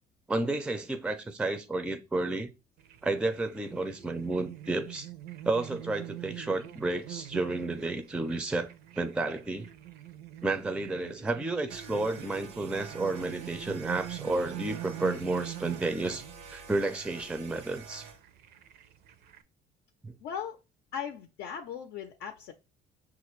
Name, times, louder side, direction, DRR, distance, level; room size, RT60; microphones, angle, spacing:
voice 1, 0.3-2.5 3.0-5.1 5.4-8.7 9.0-9.7 10.4-16.2 16.5-18.1 20.0-20.1, right 2 dB, 5° right, 0.4 m, -31 dB
sound 1, 2.8-19.4, right 13 dB, 70° right, 0.5 m, -44 dB
sound 2, 11.7-18.2, right 6 dB, 90° right, 0.9 m, -48 dB
voice 2, 20.2-20.6 20.9-22.5, left 8 dB, 80° left, 0.5 m, -38 dB
5.7 x 2.4 x 3.1 m
cardioid pair, 110°, 17 cm